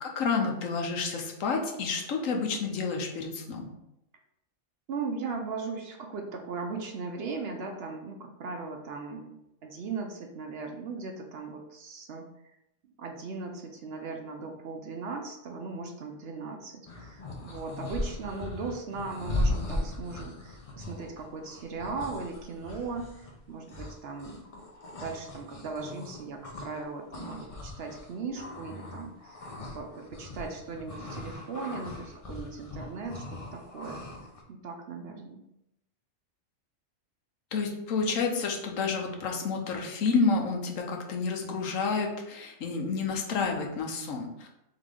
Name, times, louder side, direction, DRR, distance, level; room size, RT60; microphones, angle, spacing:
voice 1, 0.0-3.7 37.5-44.5, left 4 dB, 85° left, 2 dB, 1.2 m, -29 dB
voice 2, 4.9-12.3 13.0-24.4 25.0-29.5 29.7-34.0 34.5-35.4, right 4 dB, 60° right, 3 dB, 0.8 m, -38 dB
sound 1, 16.9-26.8 27.1-34.4, left 1 dB, 35° left, 0.6 m, -38 dB
3.9 x 3.7 x 3.6 m, 0.85 s
omnidirectional pair, 1.3 m